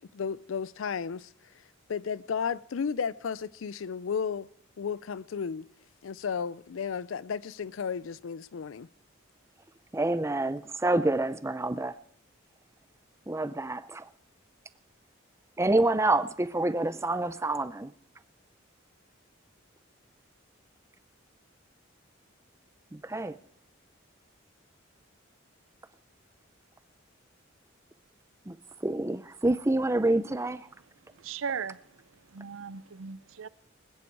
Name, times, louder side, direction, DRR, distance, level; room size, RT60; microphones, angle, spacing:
voice 1, 0.1-1.3 1.9-4.5 4.8-5.7 6.0-8.9, left 6 dB, 70° left, 0.4 m, -33 dB
voice 2, 9.9-11.9 13.3-14.1 15.6-17.9 22.9-23.4 28.5-28.6 28.8-30.7, right 2 dB, 15° right, 0.5 m, -27 dB
voice 3, 31.2-31.8 32.3-33.5, right 6 dB, 70° right, 0.6 m, -37 dB
21.0 x 10.0 x 4.7 m
head